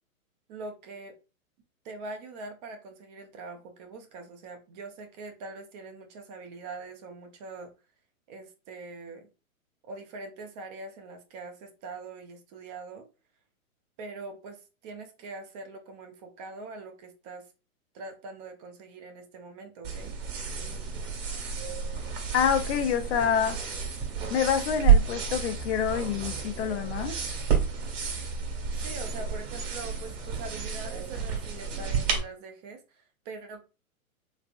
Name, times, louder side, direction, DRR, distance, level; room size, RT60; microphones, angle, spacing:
voice 1, 0.5-1.1 1.8-7.7 8.3-9.3 9.8-13.1 14.0-17.5 17.9-20.2 28.8-33.6, right 3 dB, 30° right, 0.6 m, -43 dB
sound 1, 19.8-32.2, right 6 dB, 45° right, 1.6 m, -29 dB
voice 2, 22.3-23.6 24.3-27.1, left 8 dB, 50° left, 0.6 m, -27 dB
3.3 x 3.2 x 2.5 m
hypercardioid pair, 125°, 42 cm